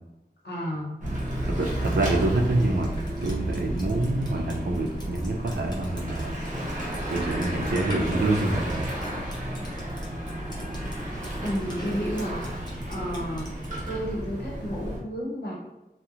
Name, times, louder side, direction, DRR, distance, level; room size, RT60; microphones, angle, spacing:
voice 1, 0.4-0.9 11.4-12.4 12.9-13.5 13.9-15.5, equal, 75° left, -4 dB, 0.8 m, -31 dB
Bicycle / Mechanisms, 1.0-15.0, right 1 dB, 45° right, 0.8 m, -32 dB
voice 2, 1.4-2.9 3.2-6.3 7.1-8.9, right 2 dB, 70° right, 2 dB, 0.4 m, -26 dB
Drip, 2.6-13.9, right 1 dB, 25° left, 0.7 m, -45 dB
sound 1, 6.8-12.8, right 4 dB, 10° right, 1.0 m, -49 dB
2.8 x 2.0 x 2.4 m, 1.0 s
wide cardioid pair, 45°, 17 cm